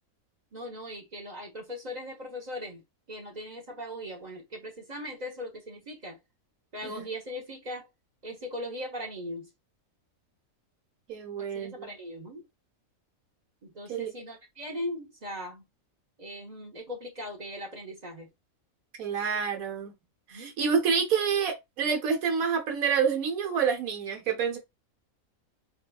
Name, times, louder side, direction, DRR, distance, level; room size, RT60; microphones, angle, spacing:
voice 1, 0.5-2.8 3.1-6.2 6.7-7.9 8.2-9.5 11.5-12.4 13.6-15.6 16.2-18.3 20.3-20.5, left 1 dB, 35° right, 0.8 m, -39 dB
voice 2, 11.1-11.9 13.9-14.1 19.0-19.9 20.3-24.6, right 6 dB, 80° right, 1.4 m, -28 dB
4.7 x 2.8 x 2.3 m
omnidirectional pair, 1.5 m